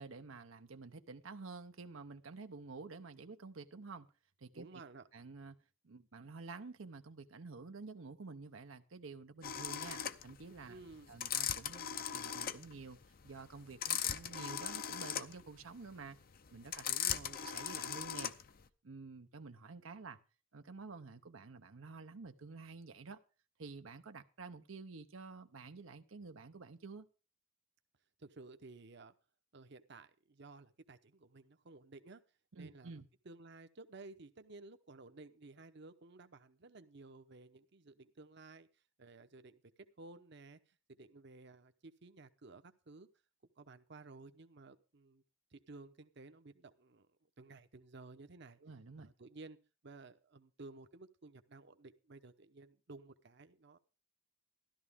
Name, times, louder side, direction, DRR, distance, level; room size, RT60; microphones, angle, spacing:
voice 1, 0.0-4.1 4.4-4.8 5.1-5.6 5.8-10.8 11.1-13.0 13.2-16.2 16.5-16.9 17.4-18.3 18.8-20.2 20.5-23.2 23.6-27.1 32.5-33.1 48.6-49.1, right 4 dB, 90° right, 0.8 m, -50 dB
voice 2, 4.5-5.0 10.7-11.2 16.8-17.4 28.2-29.1 29.5-32.2 32.5-38.7 39.0-39.6 40.0-40.6 40.9-43.1 43.6-45.2 45.5-47.1 47.4-48.6 49.0-49.6 49.8-53.8, right 3 dB, 60° right, 0.9 m, -55 dB
sound 1, 9.4-18.6, left 9 dB, 50° left, 0.7 m, -39 dB
13.5 x 12.5 x 3.6 m
head